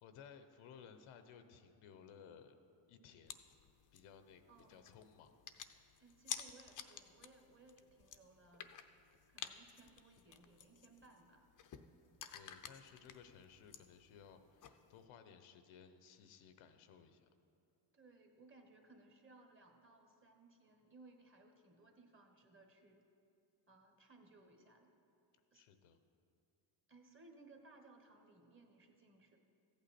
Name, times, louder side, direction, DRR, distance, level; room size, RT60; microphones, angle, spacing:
voice 1, 0.0-2.6 2.9-3.3 3.9-4.4 4.7-5.3 12.3-17.3 25.5-26.0, left 7 dB, 85° left, 9 dB, 0.9 m, -59 dB
sound 1, 3.3-15.0, left 8 dB, 40° left, 0.6 m, -53 dB
voice 2, 4.5-4.9 6.0-8.7 9.3-11.4 17.9-23.0 23.7-24.9 25.5-25.6 26.9-29.4, right 3 dB, 25° right, 3 dB, 1.3 m, -63 dB
14.5 x 8.6 x 4.3 m, 2.5 s
cardioid pair, 110°, 48 cm